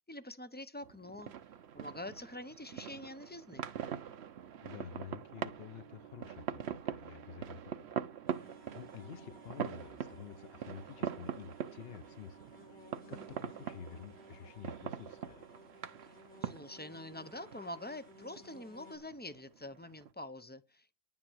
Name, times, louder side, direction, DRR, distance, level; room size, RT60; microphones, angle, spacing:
voice 1, 0.1-1.3 1.7-3.7 16.4-21.0, left 1 dB, 15° left, 0.4 m, -46 dB
sound 1, 0.8-20.1, right 8 dB, 55° right, 0.9 m, -44 dB
sound 2, 4.1-15.6, right 13 dB, 75° right, 1.5 m, -60 dB
voice 2, 4.6-8.0 8.7-15.5, left 8 dB, 50° left, 0.9 m, -50 dB
sound 3, 8.3-19.0, left 1 dB, 85° left, 5.4 m, -58 dB
10.0 x 9.5 x 6.2 m
omnidirectional pair, 1.5 m